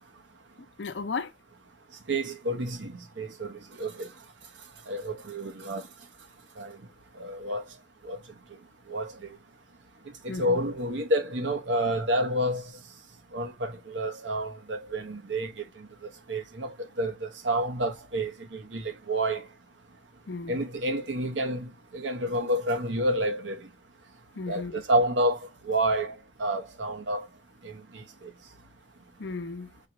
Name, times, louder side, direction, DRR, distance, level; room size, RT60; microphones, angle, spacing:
voice 1, 0.8-1.3 10.3-10.6 20.3-20.6 24.4-24.8 29.2-29.7, left 4 dB, 70° left, 0.6 m, -35 dB
voice 2, 2.1-3.5 3.8-4.1 4.9-5.8 6.6-6.7 7.2-7.6 8.0-8.2 8.9-9.1 10.2-12.6 13.3-15.5 16.3-19.4 20.5-23.6 24.5-25.4 25.7-26.1 26.4-27.3 27.6-28.3, right 1 dB, 80° right, 1.0 m, -29 dB
4.3 x 3.3 x 3.0 m
head